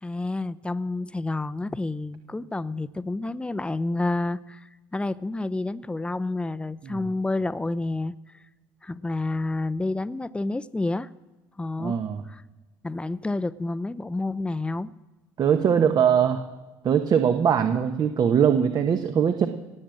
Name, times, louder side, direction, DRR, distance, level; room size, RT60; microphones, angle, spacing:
voice 1, 0.0-8.1 8.8-11.1 11.6-12.0 12.3-12.4 12.8-14.9, left 2 dB, 10° left, 15 dB, 0.7 m, -29 dB
voice 2, 11.8-12.2 15.4-16.4 16.8-19.5, right 8 dB, 45° right, 7 dB, 1.1 m, -21 dB
18.0 x 7.6 x 7.5 m, 1.2 s
hypercardioid pair, 70°, 9 cm